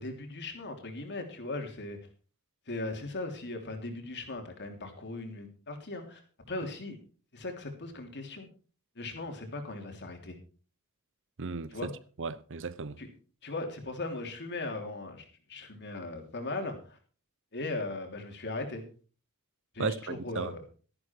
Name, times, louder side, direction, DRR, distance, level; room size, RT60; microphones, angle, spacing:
voice 1, 0.0-2.0 2.7-6.2 6.5-7.0 7.3-8.5 8.9-10.4 11.7-11.9 13.0-13.1 13.4-17.0 17.5-18.8 19.7-20.6, left 2 dB, 55° left, 3.2 m, -38 dB
voice 2, 11.4-11.9 12.2-13.0 19.8-20.5, right 4 dB, 60° right, 0.8 m, -35 dB
13.5 x 11.5 x 4.6 m
head